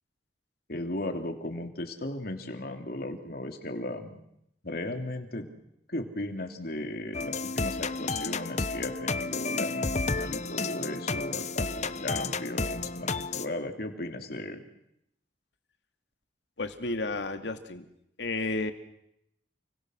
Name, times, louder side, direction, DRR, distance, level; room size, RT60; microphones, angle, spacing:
voice 1, 0.7-4.2 4.6-5.5 5.9-14.6, left 1 dB, 60° left, 5 dB, 3.0 m, -36 dB
sound 1, 7.1-13.4, left 4 dB, 40° left, 0.9 m, -31 dB
voice 2, 16.6-17.8 18.2-18.7, left 2 dB, 80° left, 7 dB, 2.5 m, -32 dB
29.5 x 24.5 x 6.4 m, 0.79 s
head